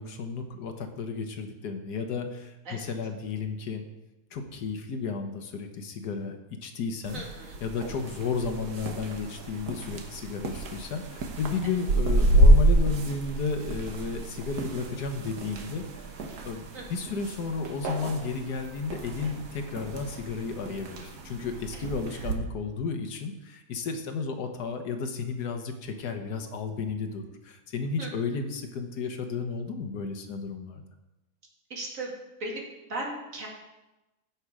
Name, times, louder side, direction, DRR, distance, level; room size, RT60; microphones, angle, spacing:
voice 1, 0.0-3.8 4.3-6.4 6.6-7.2 7.6-16.1 16.4-30.8, left 5 dB, 75° left, 6 dB, 1.6 m, -33 dB
sound 1, 7.0-22.3, right 1 dB, 70° right, 1.7 m, -28 dB
voice 2, 7.1-7.6 11.6-11.8 16.7-17.2 21.7-21.8 22.1-22.3 28.0-28.1 31.7-32.1 32.4-32.6 32.9-33.5, right 2 dB, 55° right, -2 dB, 2.5 m, -37 dB
15.0 x 5.9 x 4.9 m, 1.0 s
omnidirectional pair, 1.8 m